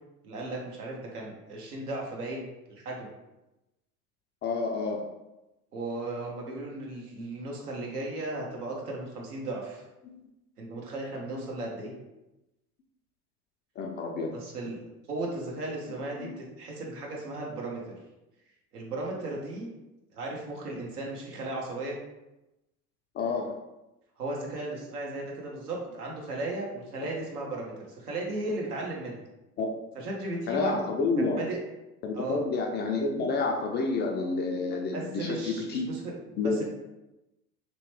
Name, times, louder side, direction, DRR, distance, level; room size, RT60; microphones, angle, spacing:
voice 1, 0.2-3.1 5.7-9.8 10.6-11.9 14.3-14.8 15.1-18.0 18.7-19.7 20.1-22.0 24.2-29.2 29.9-30.9 31.2-31.6 32.1-32.4 34.9-36.6, right 2 dB, 85° right, -2 dB, 1.1 m, -36 dB
voice 2, 4.4-5.0 10.0-10.2 11.3-11.4 13.8-14.3 16.2-16.4 23.1-23.5 27.0-27.1 29.6-29.7 30.5-31.4 32.0-35.9 36.4-36.6, left 3 dB, 25° left, 1 dB, 0.4 m, -29 dB
3.1 x 3.0 x 3.1 m, 0.95 s
hypercardioid pair, 80°, 45 cm